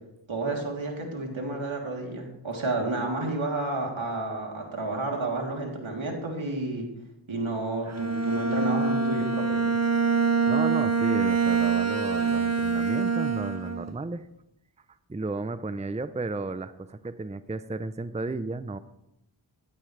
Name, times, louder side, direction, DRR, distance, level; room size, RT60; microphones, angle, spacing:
voice 1, 0.3-6.8 7.3-9.6, right 2 dB, 75° right, 0 dB, 3.3 m, -31 dB
Bowed string instrument, 7.9-13.9, right 5 dB, 35° right, 1.3 m, -25 dB
voice 2, 10.2-14.3 15.1-18.8, right 3 dB, 15° right, 12 dB, 0.6 m, -34 dB
17.0 x 12.5 x 3.3 m, 0.84 s
cardioid pair, 45°, 48 cm